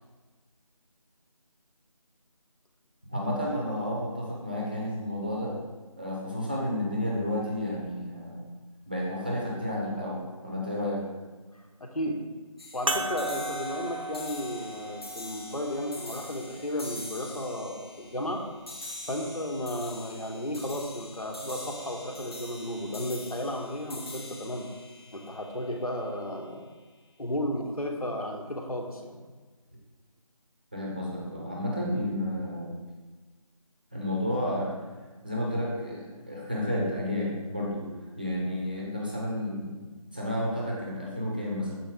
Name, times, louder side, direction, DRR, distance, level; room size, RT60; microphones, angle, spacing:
voice 1, 3.1-5.5 6.0-8.4 8.9-11.0 30.7-32.7 33.9-34.8 35.2-37.9 38.2-39.9 40.1-41.8, left 1 dB, 15° right, -3 dB, 0.7 m, -31 dB
voice 2, 11.8-12.2 12.7-18.4 19.1-24.7 25.1-26.6 27.2-29.2, left 1 dB, 85° left, 1 dB, 1.3 m, -33 dB
sound 1, 12.6-26.0, left 2 dB, 45° left, 0.9 m, -44 dB
sound 2, 12.9-17.7 18.4-18.5 20.7-20.8, right 1 dB, 65° right, 0.6 m, -36 dB
7.4 x 4.4 x 3.5 m, 1.3 s
figure-of-eight pair, 165°, 18 cm